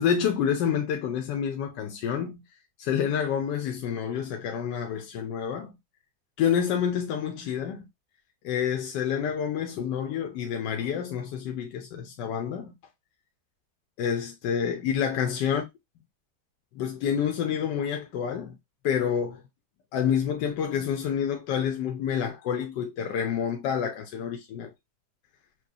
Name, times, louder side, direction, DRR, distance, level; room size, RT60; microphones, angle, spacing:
voice 1, 0.0-2.4 2.8-5.8 6.4-7.9 8.4-12.7 14.0-15.6 16.7-18.6 18.8-19.4 19.9-24.7, left 8 dB, 85° left, 1.3 m, -28 dB
6.2 x 2.3 x 2.7 m
omnidirectional pair, 1.8 m